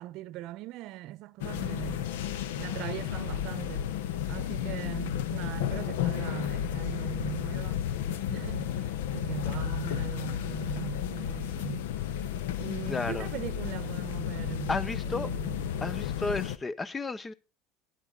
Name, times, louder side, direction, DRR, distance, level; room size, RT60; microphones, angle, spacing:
voice 1, 0.0-2.1 2.6-3.9 4.3-7.8 8.3-11.9 12.6-14.7 15.0-15.8, right 15 dB, 60° right, 0.8 m, -40 dB
sound 1, 1.4-16.6, left 10 dB, 90° left, 1.0 m, -33 dB
voice 2, 12.9-13.3 14.7-15.3 15.8-17.3, left 3 dB, 20° left, 0.9 m, -32 dB
13.0 x 10.5 x 3.9 m
supercardioid pair, 120°, 0 cm